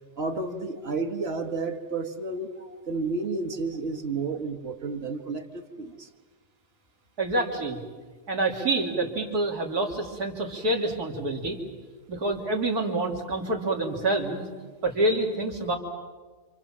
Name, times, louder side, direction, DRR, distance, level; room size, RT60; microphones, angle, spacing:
voice 1, 0.2-2.5 2.9-6.1, right 3 dB, 40° right, 6 dB, 1.9 m, -31 dB
voice 2, 7.2-7.8 8.3-11.6 12.1-14.5 14.8-15.8, right 2 dB, 80° right, 1 dB, 3.7 m, -27 dB
28.5 x 27.0 x 7.5 m, 1.4 s
omnidirectional pair, 1.6 m